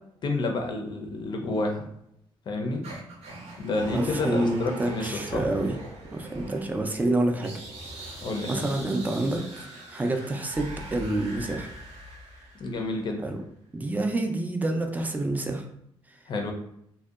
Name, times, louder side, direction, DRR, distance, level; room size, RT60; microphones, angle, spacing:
voice 1, 0.2-1.9 2.5-2.9 3.6-5.4 8.2-8.6 12.6-13.2 16.3-16.5, left 2 dB, 50° left, 3 dB, 0.5 m, -29 dB
sound 1, 2.8-13.0, right 2 dB, 90° right, 0.7 m, -41 dB
voice 2, 3.9-5.8 6.1-7.6 8.0-8.2 8.5-11.7 13.2-13.4 13.7-15.7, right 2 dB, 15° right, 4 dB, 0.3 m, -28 dB
2.6 x 2.1 x 2.3 m, 0.76 s
cardioid pair, 135°, 10 cm